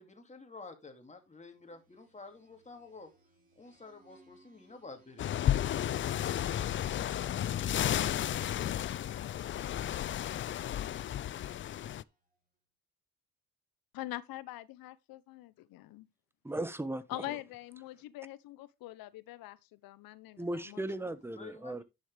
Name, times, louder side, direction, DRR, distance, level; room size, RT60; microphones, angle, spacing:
voice 1, 0.0-3.1 3.6-5.4 21.4-21.8, left 3 dB, 20° left, 2.6 m, -50 dB
sound 1, 1.4-12.3, right 2 dB, 25° right, 6.4 m, -67 dB
sound 2, 5.2-12.0, left 11 dB, 35° left, 0.4 m, -33 dB
voice 2, 13.9-16.1 17.1-20.8, left 16 dB, 75° left, 1.0 m, -44 dB
voice 3, 16.4-17.4 20.4-21.8, right 1 dB, 5° right, 0.9 m, -37 dB
11.0 x 6.5 x 3.4 m
cardioid pair, 95°, 36 cm